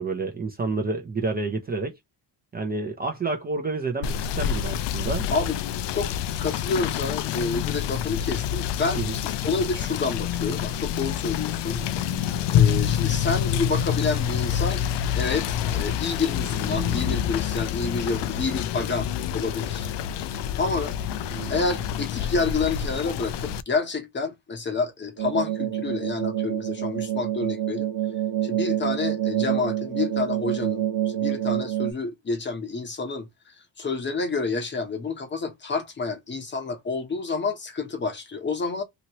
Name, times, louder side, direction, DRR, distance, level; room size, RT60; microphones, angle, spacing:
voice 1, 0.0-2.0 2.5-5.2 9.0-9.2, right 3 dB, 25° right, 0.5 m, -29 dB
Rain / Motor vehicle (road), 4.0-23.6, left 9 dB, 75° left, 0.5 m, -27 dB
voice 2, 6.4-11.8 12.5-14.8 15.2-19.9 20.6-21.0 21.5-27.9 28.4-33.3 33.8-38.8, left 4 dB, 25° left, 0.8 m, -29 dB
sound 1, 9.0-9.6 11.6-12.6 16.4-17.4 20.7-22.0, right 9 dB, 40° right, 1.0 m, -41 dB
sound 2, 25.2-31.9, right 12 dB, 75° right, 0.7 m, -27 dB
2.9 x 2.9 x 2.8 m
cardioid pair, 160°, 42 cm